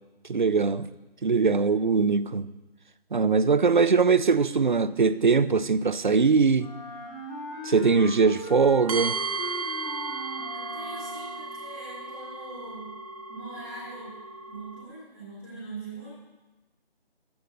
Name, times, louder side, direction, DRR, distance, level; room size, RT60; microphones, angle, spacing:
voice 1, 0.3-0.9 1.2-2.5 3.1-6.7 7.6-9.2, right 5 dB, 50° right, 0.5 m, -21 dB
Wind instrument woodwind instrument, 6.6-11.6, left 1 dB, 50° left, 4.5 m, -39 dB
sound 1, 8.9-14.8, right 4 dB, 35° right, 1.3 m, -35 dB
voice 2, 10.5-13.0 13.3-14.2 14.5-16.1, right 3 dB, ahead, 0.7 m, -42 dB
13.0 x 10.0 x 3.8 m
figure-of-eight pair, 160°, 31 cm